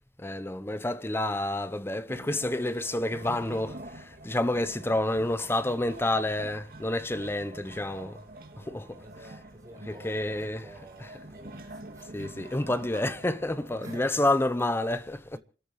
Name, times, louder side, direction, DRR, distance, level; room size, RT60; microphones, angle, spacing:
voice 1, 0.2-8.2 8.6-9.4 9.9-11.2 12.1-15.4, left 1 dB, 15° left, 0.7 m, -29 dB
sound 1, 2.1-14.0, right 1 dB, 55° right, 2.4 m, -46 dB
voice 2, 9.0-12.4 13.8-14.3 14.6-15.0 15.3-15.4, right 1 dB, 20° right, 6.4 m, -51 dB
28.5 x 14.0 x 3.1 m
head